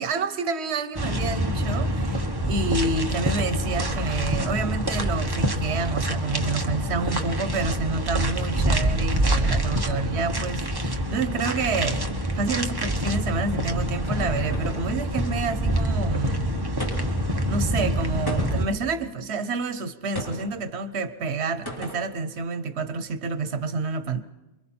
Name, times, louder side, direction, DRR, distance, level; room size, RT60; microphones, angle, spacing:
voice 1, 0.0-16.4 17.5-24.2, right 4 dB, 85° right, 1.2 m, -29 dB
sound 1, 1.0-18.6, equal, 20° right, 1.2 m, -26 dB
sound 2, 13.7-14.9 16.8-17.3 18.3-18.8 20.1-20.5 21.7-22.1, equal, 20° left, 3.6 m, -35 dB
28.5 x 22.5 x 4.3 m
omnidirectional pair, 1.1 m